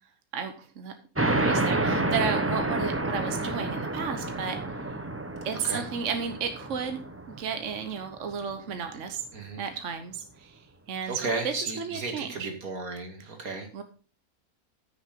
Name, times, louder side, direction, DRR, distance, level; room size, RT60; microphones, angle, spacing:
voice 1, 0.3-0.9 1.2-4.6 5.4-7.0 7.4-9.2 9.6-10.6 10.9-12.5 13.7-13.8, right 6 dB, 60° right, 7 dB, 1.3 m, -33 dB
sound 1, 1.2-8.3, right 2 dB, 10° right, 0.7 m, -29 dB
voice 2, 3.2-3.5 5.6-5.8 9.3-9.6 11.0-13.7, right 3 dB, 85° right, 4 dB, 2.7 m, -34 dB
14.5 x 6.6 x 3.7 m, 0.37 s
omnidirectional pair, 1.5 m